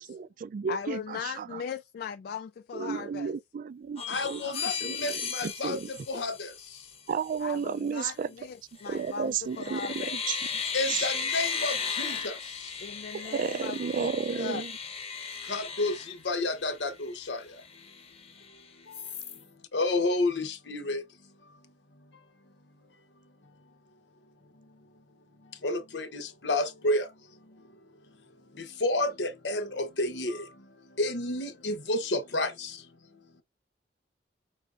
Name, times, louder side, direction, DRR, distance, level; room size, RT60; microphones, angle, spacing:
voice 1, 0.0-1.6 2.7-5.9 7.1-8.3 8.9-10.5 10.9-11.1 13.1-14.7, right 6 dB, 50° right, 0.3 m, -33 dB
voice 2, 0.7-3.3 7.4-10.2 12.8-14.6, left 7 dB, 60° left, 0.3 m, -39 dB
sound 1, 4.0-7.0 8.8-9.2 9.5-16.8 17.2-17.3 17.6-18.5 18.9-19.4, left 6 dB, 35° left, 0.9 m, -36 dB
voice 3, 4.1-6.5 10.7-12.4 15.5-17.4 19.7-21.0 25.6-27.1 28.8-30.5 31.0-32.8, left 2 dB, 80° left, 0.9 m, -30 dB
5.8 x 3.4 x 2.5 m
head